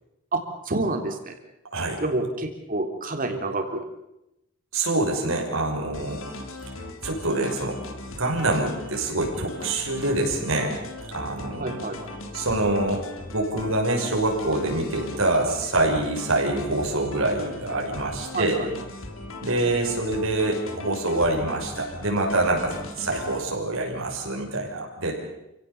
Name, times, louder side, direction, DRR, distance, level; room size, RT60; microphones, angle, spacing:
voice 1, 0.3-1.3 2.0-3.9 11.6-12.0 18.3-18.7, right 2 dB, 40° right, 5 dB, 3.4 m, -28 dB
voice 2, 4.7-6.2 7.0-7.8 8.2-10.7 11.1-11.8 12.3-13.0 13.3-18.6 19.4-25.2, right 2 dB, 85° right, 0 dB, 6.2 m, -25 dB
sound 1, 5.9-23.4, left 2 dB, 75° left, 3.5 m, -38 dB
28.5 x 17.0 x 7.1 m, 0.86 s
head